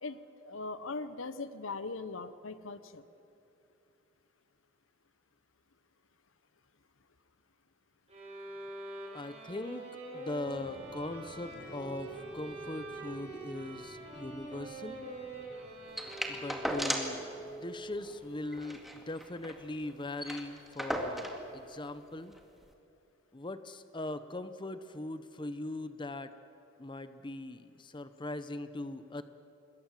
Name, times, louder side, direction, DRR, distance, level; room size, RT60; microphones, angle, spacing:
voice 1, 0.0-3.0, left 3 dB, 85° left, 13 dB, 1.0 m, -40 dB
sound 1, 8.1-17.3, right 2 dB, 30° right, 5.6 m, -45 dB
voice 2, 9.1-9.8 10.1-15.0 16.3-22.3 23.3-26.3 26.8-29.2, left 2 dB, 25° left, 11 dB, 0.8 m, -40 dB
sound 2, 10.4-21.3, right 1 dB, 50° left, 4.8 m, -51 dB
sound 3, 16.0-17.2 17.6-17.7 17.9-18.1 18.5-19.6 19.9-20.0 20.2-21.4 22.3-22.4, equal, ahead, 2.1 m, -36 dB
26.5 x 21.0 x 7.5 m, 2.7 s
head